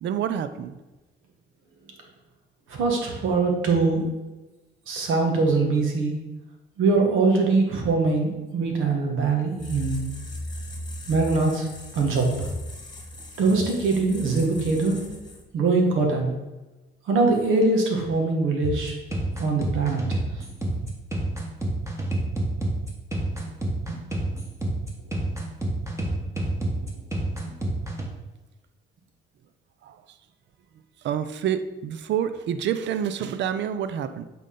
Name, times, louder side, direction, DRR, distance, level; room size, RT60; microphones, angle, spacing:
voice 1, 0.0-0.8 29.8-30.0 31.0-34.3, right 9 dB, 65° right, 11 dB, 0.5 m, -28 dB
voice 2, 2.7-4.1 4.9-6.1 6.8-10.0 11.1-11.7 11.9-12.5 13.4-15.0 15.5-16.3 17.1-18.9 19.4-20.2, right 3 dB, 90° right, 2 dB, 1.4 m, -22 dB
sound 1, 9.6-15.6, left 2 dB, 20° left, 1.5 m, -38 dB
sound 2, 18.6-28.0, right 1 dB, 15° right, 1.5 m, -28 dB
8.4 x 3.9 x 3.8 m, 1.1 s
cardioid pair, 90°, 20 cm